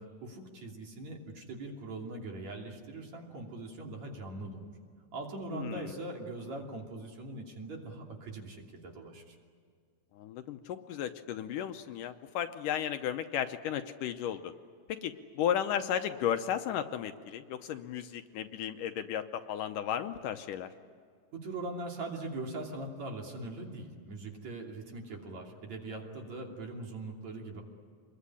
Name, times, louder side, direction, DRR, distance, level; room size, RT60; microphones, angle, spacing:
voice 1, 0.0-4.7 5.1-9.4 21.3-27.6, right 2 dB, 50° right, 1 dB, 4.0 m, -41 dB
voice 2, 5.5-6.0 10.1-14.5 14.9-20.7, left 9 dB, 75° left, 8 dB, 2.3 m, -34 dB
27.0 x 21.5 x 10.0 m, 2.1 s
omnidirectional pair, 4.1 m